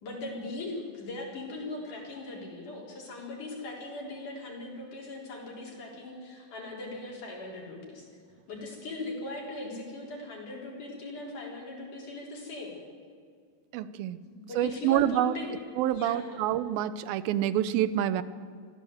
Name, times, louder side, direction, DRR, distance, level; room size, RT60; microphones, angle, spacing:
voice 1, 0.0-8.1 8.5-12.8 14.3-15.5 15.9-16.4, left 2 dB, 60° left, -2 dB, 5.3 m, -39 dB
voice 2, 13.7-14.2 14.6-15.4 15.8-18.2, right 12 dB, 85° right, 15 dB, 2.6 m, -27 dB
23.5 x 15.0 x 8.0 m, 2.1 s
omnidirectional pair, 4.1 m